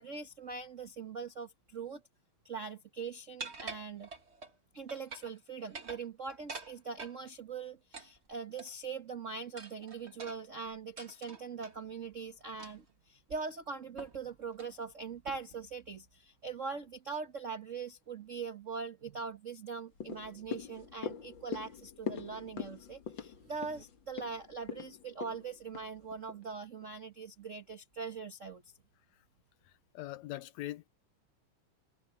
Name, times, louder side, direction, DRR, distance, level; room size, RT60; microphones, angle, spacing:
voice 1, 0.0-2.0 2.4-4.1 4.7-28.6, right 5 dB, 80° right, 0.6 m, -42 dB
sound 1, 3.4-4.6 4.9-5.4 5.6-7.2 7.9-8.9 9.6-11.8 12.6-12.9 13.3-13.4 14.0-14.2 14.5-14.8 15.3-15.6, right 4 dB, 30° right, 1.6 m, -47 dB
sound 2, 20.0-26.4 26.8-26.9, left 7 dB, 50° left, 1.8 m, -43 dB
sound 3, 23.3-23.8, right 4 dB, 45° right, 5.4 m, -60 dB
voice 2, 29.6-30.9, left 15 dB, 75° left, 2.0 m, -43 dB
omnidirectional pair, 3.3 m